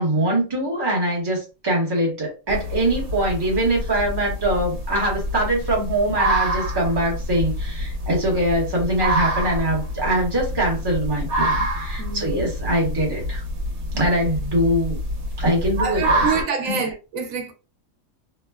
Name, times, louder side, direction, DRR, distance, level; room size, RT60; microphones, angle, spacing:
voice 1, 0.0-13.4 13.9-15.0 15.4-16.3 16.7-16.8, right 1 dB, 20° right, 1.0 m, -23 dB
sound 1, 2.5-16.4, equal, 60° right, 1.2 m, -27 dB
voice 2, 12.0-12.4 15.8-17.5, right 5 dB, 90° right, 1.1 m, -26 dB
3.1 x 2.1 x 2.2 m
omnidirectional pair, 1.4 m